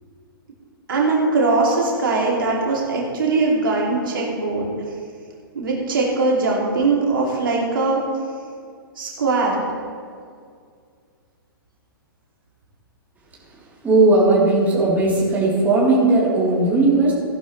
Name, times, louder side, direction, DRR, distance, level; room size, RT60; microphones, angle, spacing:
voice 1, 0.9-4.7 5.5-8.0 9.0-9.6, right 3 dB, 65° right, -3 dB, 2.7 m, -21 dB
voice 2, 13.8-17.1, right 2 dB, 15° right, -7 dB, 3.6 m, -17 dB
15.5 x 11.0 x 3.3 m, 2.2 s
figure-of-eight pair, 115°, 12 cm